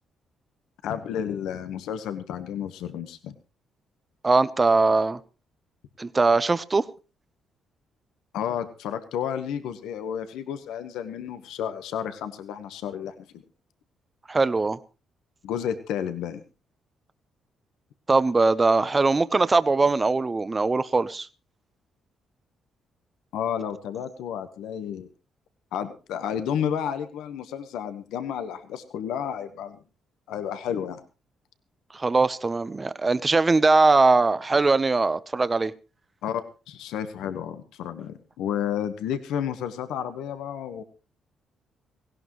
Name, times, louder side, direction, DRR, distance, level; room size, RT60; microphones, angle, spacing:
voice 1, 0.8-3.3 8.3-13.4 15.4-16.4 23.3-25.1 25.7-29.8 30.3-31.0 36.2-40.8, left 9 dB, 85° left, 1.2 m, -31 dB
voice 2, 4.2-5.2 6.0-6.9 14.3-14.8 18.1-21.3 31.9-35.7, right 3 dB, 25° right, 0.8 m, -21 dB
17.5 x 16.5 x 3.1 m
cardioid pair, 90°, 0 cm